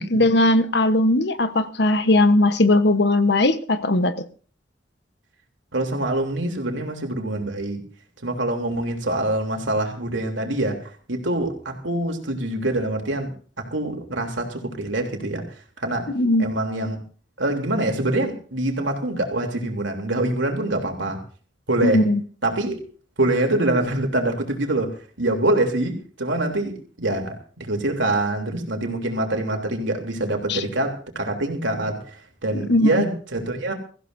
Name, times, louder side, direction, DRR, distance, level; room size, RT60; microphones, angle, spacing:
voice 1, 0.0-4.2 16.1-16.5 21.8-22.2 30.5-30.6 32.7-32.9, left 1 dB, 60° left, 1.2 m, -18 dB
voice 2, 5.7-7.8 8.2-13.3 13.6-15.5 15.8-16.1 16.4-17.0 17.4-21.2 21.7-22.0 22.4-22.8 23.2-33.7, right 1 dB, 80° right, 3.4 m, -25 dB
24.0 x 15.0 x 2.7 m
head